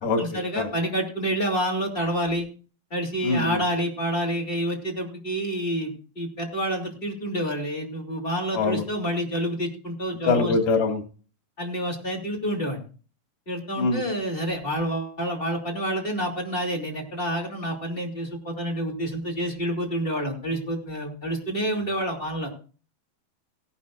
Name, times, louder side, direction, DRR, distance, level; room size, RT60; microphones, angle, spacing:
voice 1, 0.2-2.5 2.9-10.5 11.6-12.8 13.5-22.5, equal, 15° left, -1 dB, 2.7 m, -28 dB
voice 2, 3.2-3.6 8.5-8.8 10.3-11.0 13.8-14.0, left 3 dB, 90° left, 4 dB, 4.0 m, -23 dB
17.5 x 11.5 x 2.6 m, 0.38 s
omnidirectional pair, 4.2 m